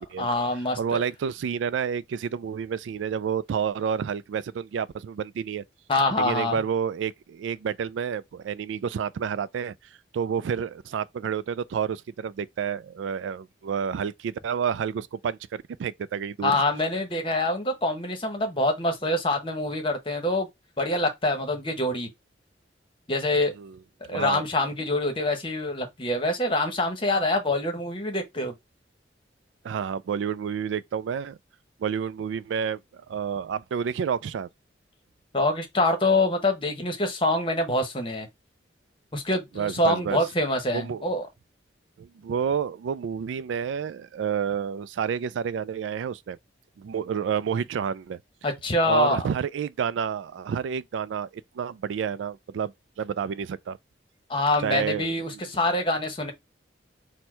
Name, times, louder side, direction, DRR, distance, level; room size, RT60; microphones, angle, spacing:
voice 1, 0.2-1.0 5.9-6.6 16.4-20.5 20.8-22.1 23.1-23.5 24.1-28.5 35.3-38.3 39.1-41.3 48.4-49.3 54.3-56.3, left 2 dB, 30° left, 1.0 m, -25 dB
voice 2, 0.8-5.6 6.2-9.7 10.1-16.5 23.6-23.8 24.1-24.4 29.6-31.4 31.8-34.5 39.6-40.2 40.7-41.1 42.0-46.4 46.8-48.2 48.8-53.8 54.6-55.1, right 7 dB, 85° right, 0.3 m, -29 dB
4.3 x 2.2 x 4.4 m
head